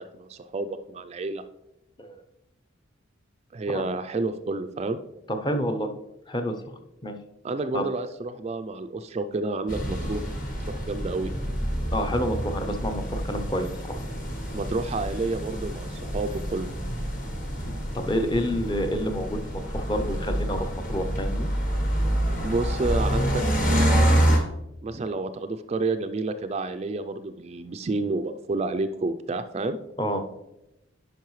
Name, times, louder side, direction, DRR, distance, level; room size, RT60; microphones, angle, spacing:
voice 1, 0.0-1.4 3.5-5.0 7.4-10.2 10.6-11.3 14.5-16.7 22.4-24.2 24.8-29.8, right 3 dB, 30° right, 9 dB, 0.3 m, -30 dB
voice 2, 5.3-5.9 6.3-6.5 7.0-7.1 7.7-7.9 11.9-14.0 17.6-21.5 30.0-30.2, equal, 20° left, 6 dB, 0.6 m, -29 dB
sound 1, 9.7-24.4, equal, 40° left, 1.2 m, -27 dB
10.0 x 5.4 x 3.1 m, 0.92 s
head